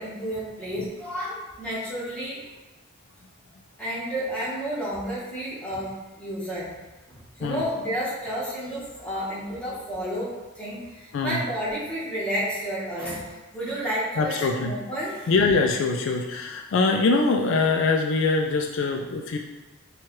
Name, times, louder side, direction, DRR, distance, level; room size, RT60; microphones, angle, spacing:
voice 1, 0.0-2.4 3.8-6.7 7.1-15.3, equal, 5° left, -8 dB, 1.0 m, -31 dB
voice 2, 14.2-14.7 15.3-19.4, left 3 dB, 65° left, 3 dB, 0.3 m, -23 dB
4.5 x 2.3 x 3.0 m, 1.1 s
head